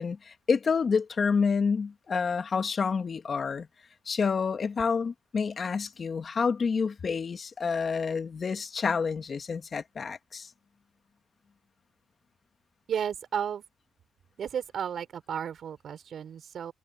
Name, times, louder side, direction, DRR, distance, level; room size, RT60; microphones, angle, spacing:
voice 1, 0.0-3.7 4.1-10.5, left 5 dB, 40° left, 1.9 m, -28 dB
voice 2, 12.9-13.6 14.4-16.7, right 8 dB, 60° right, 4.9 m, -33 dB
cardioid pair, 90°, 0 cm